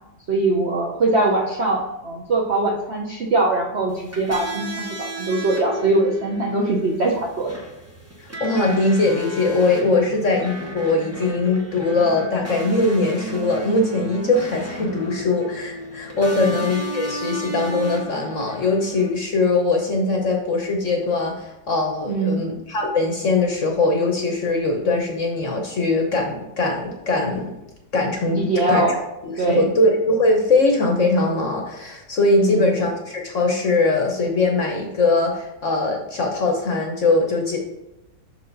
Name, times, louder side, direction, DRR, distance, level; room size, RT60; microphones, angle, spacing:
voice 1, 0.3-7.5 10.1-10.2 16.4-16.6 22.1-22.4 28.4-28.9 29.4-29.7 32.4-32.7, right 2 dB, 55° right, -2 dB, 0.7 m, -22 dB
sound 1, 3.9-19.1, right 1 dB, 20° right, 0.4 m, -33 dB
voice 2, 8.4-27.5 27.9-28.9 29.2-37.6, left 3 dB, 50° left, 1 dB, 1.0 m, -21 dB
6.6 x 4.7 x 3.9 m, 0.94 s
omnidirectional pair, 2.0 m